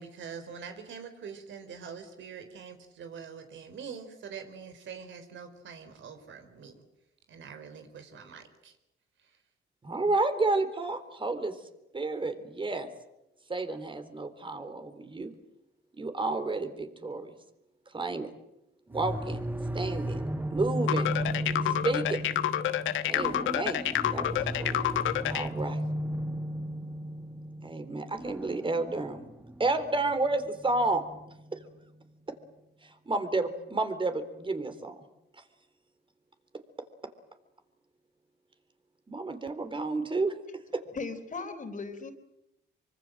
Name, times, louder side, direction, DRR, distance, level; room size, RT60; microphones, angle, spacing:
voice 1, 0.0-6.7 7.3-8.7, right 6 dB, 70° right, 8 dB, 4.3 m, -44 dB
voice 2, 9.8-11.6 11.9-12.9 13.5-15.3 16.0-17.3 17.9-18.3 18.9-19.5 19.7-21.1 21.6-22.2 23.1-23.8 24.1-24.8 25.3-25.8 27.6-29.3 29.6-31.1 31.5-31.6 32.3-32.4 32.8-35.0 39.1-40.3, right 3 dB, 25° right, 9 dB, 3.7 m, -31 dB
sound 1, 18.9-31.7, equal, 10° right, 1.4 m, -35 dB
sound 2, 20.9-25.5, left 12 dB, 80° left, 1.2 m, -28 dB
voice 3, 40.9-42.1, left 4 dB, 40° left, 7 dB, 3.8 m, -37 dB
25.0 x 24.5 x 7.8 m, 0.89 s
cardioid pair, 90°, 20 cm